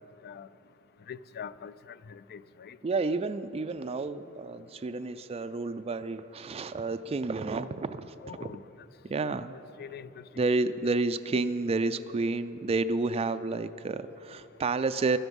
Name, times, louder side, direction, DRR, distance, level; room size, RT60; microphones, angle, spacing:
voice 1, 1.1-2.8 8.2-8.7 9.8-10.2, left 7 dB, 45° left, 16 dB, 0.4 m, -43 dB
voice 2, 2.8-8.1 8.4-8.5 9.1-9.6 10.4-15.2, right 3 dB, 30° right, 10 dB, 0.4 m, -30 dB
16.0 x 13.0 x 5.3 m, 2.9 s
head